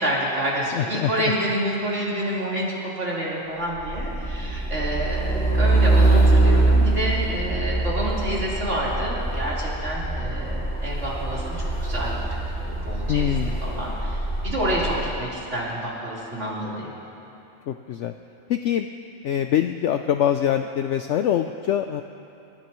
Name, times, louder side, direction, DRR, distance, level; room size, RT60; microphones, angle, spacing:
voice 1, 0.0-11.5 11.8-12.2 12.6-13.3 13.6-16.9, right 1 dB, 55° right, -7 dB, 4.2 m, -28 dB
voice 2, 0.7-1.3 13.1-13.6 17.7-18.1 18.5-18.9 19.2-22.0, left 10 dB, 65° left, 7 dB, 0.8 m, -24 dB
Truck, 3.7-15.2, right 2 dB, 5° left, 2.6 m, -23 dB
28.5 x 16.0 x 3.1 m, 2.8 s
omnidirectional pair, 1.5 m